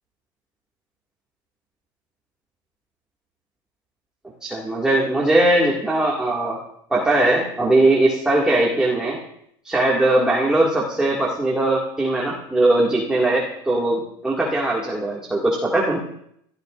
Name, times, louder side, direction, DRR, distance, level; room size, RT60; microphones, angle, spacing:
voice 1, 4.4-6.6 6.9-9.2 9.6-16.0, right 2 dB, 5° right, -4 dB, 2.1 m, -20 dB
29.5 x 14.0 x 2.6 m, 0.73 s
cardioid pair, 150°, 11 cm